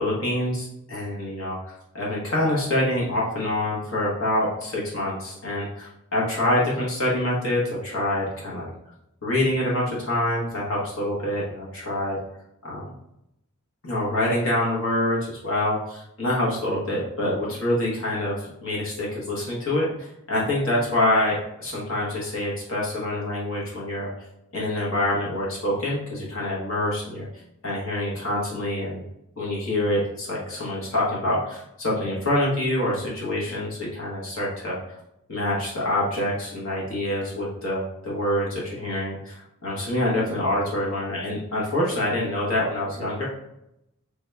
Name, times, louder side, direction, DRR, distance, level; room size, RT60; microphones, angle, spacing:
voice 1, 0.0-8.7 9.2-12.2 12.6-12.9 13.8-24.1 24.5-27.3 27.6-29.0 29.4-34.8 35.3-43.3, left 1 dB, 60° left, -5 dB, 1.1 m, -26 dB
3.5 x 2.9 x 3.3 m, 0.83 s
head